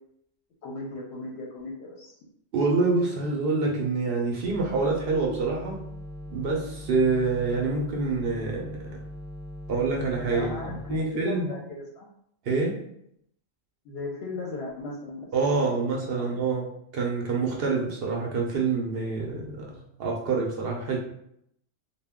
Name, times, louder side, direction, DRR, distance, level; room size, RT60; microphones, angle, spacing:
voice 1, 0.6-2.0 10.3-12.1 13.8-15.3 15.6-15.8 16.2-16.3, left 3 dB, 65° left, -2 dB, 0.8 m, -36 dB
voice 2, 2.5-5.8 6.3-9.0 9.7-10.5 10.9-11.5 12.5-12.8 15.3-21.0, right 4 dB, 60° right, -1 dB, 0.7 m, -26 dB
sound 1, 4.4-11.0, left 1 dB, 80° right, 1.0 m, -40 dB
2.2 x 2.1 x 3.5 m, 0.73 s
omnidirectional pair, 1.3 m